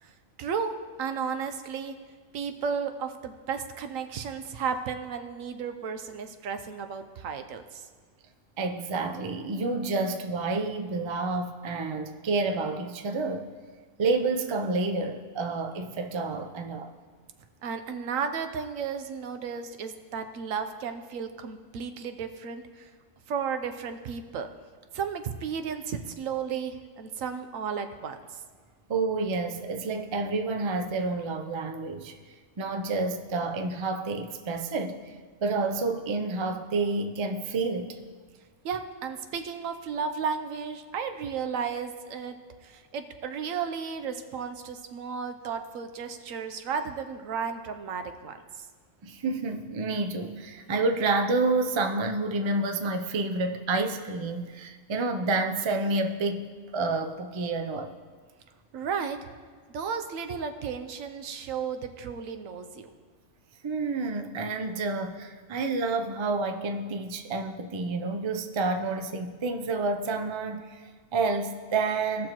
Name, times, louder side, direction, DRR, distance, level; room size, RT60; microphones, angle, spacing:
voice 1, 0.0-1.9 2.3-7.9 17.6-22.9 23.3-24.5 24.9-28.2 38.6-42.4 42.6-48.7 58.7-59.3 59.7-62.9, right 6 dB, 80° right, 8 dB, 1.1 m, -34 dB
voice 2, 8.6-13.5 14.0-16.9 28.9-32.1 32.6-35.2 35.4-38.0 45.4-45.5 49.0-57.9 63.6-72.3, right 3 dB, 50° right, 5 dB, 0.3 m, -29 dB
17.0 x 6.4 x 3.0 m, 1.5 s
omnidirectional pair, 1.4 m